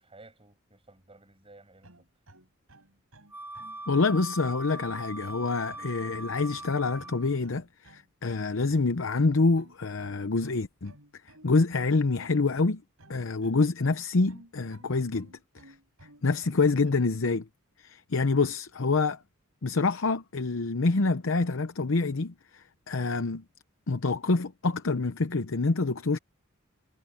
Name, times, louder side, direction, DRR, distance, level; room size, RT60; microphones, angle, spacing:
voice 1, 0.0-2.0, right 2 dB, 25° right, 7.5 m, -54 dB
sound 1, 1.8-17.4, right 1 dB, 80° right, 5.3 m, -55 dB
Wind instrument woodwind instrument, 3.3-7.4, right 1 dB, 10° right, 4.2 m, -41 dB
voice 2, 3.9-10.9 11.4-12.8 13.1-15.3 15.7-15.8 16.2-17.5 17.8-19.2 19.6-23.4 23.9-26.2, left 3 dB, 65° left, 0.8 m, -26 dB
head